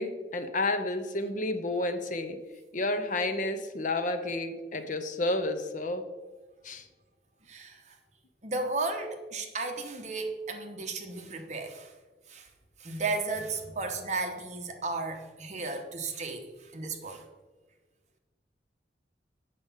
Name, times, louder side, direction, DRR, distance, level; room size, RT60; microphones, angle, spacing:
voice 1, 0.0-2.4 2.7-6.1 6.6-6.9, left 2 dB, 45° left, 9 dB, 0.7 m, -31 dB
voice 2, 7.5-8.0 8.4-11.9 12.3-12.5 12.8-17.2, right 3 dB, 40° right, 4 dB, 1.0 m, -34 dB
8.0 x 6.8 x 5.5 m, 1.3 s
head